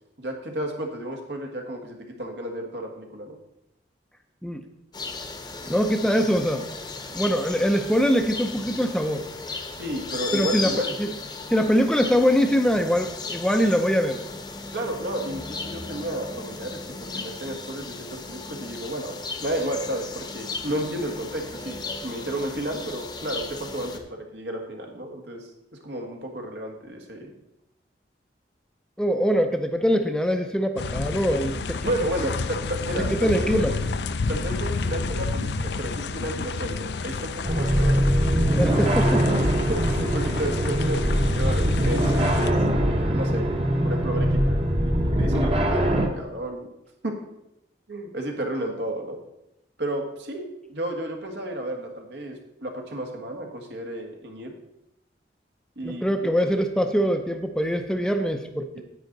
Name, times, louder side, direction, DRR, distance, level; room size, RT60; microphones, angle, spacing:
voice 1, 0.2-3.4 9.8-10.9 14.7-25.5 25.8-27.3 31.8-33.8 34.3-38.2 39.7-43.6 43.8-46.7 47.0-47.2 47.9-49.2 49.8-54.5 55.8-56.1 56.4-56.5 58.7-58.8, right 1 dB, 75° right, 2 dB, 1.7 m, -32 dB
sound 1, 4.9-24.0, left 3 dB, 25° left, 0.8 m, -36 dB
voice 2, 5.7-6.7 7.1-9.2 10.3-10.7 11.0-11.1 11.5-14.2 29.0-31.8 33.0-33.7 38.6-39.3 55.8-58.8, equal, 5° left, 6 dB, 0.5 m, -23 dB
sound 2, 30.8-42.5, left 4 dB, 70° left, 0.5 m, -30 dB
sound 3, 37.4-46.1, equal, 30° right, 1.0 m, -22 dB
10.0 x 8.8 x 4.0 m, 0.85 s
head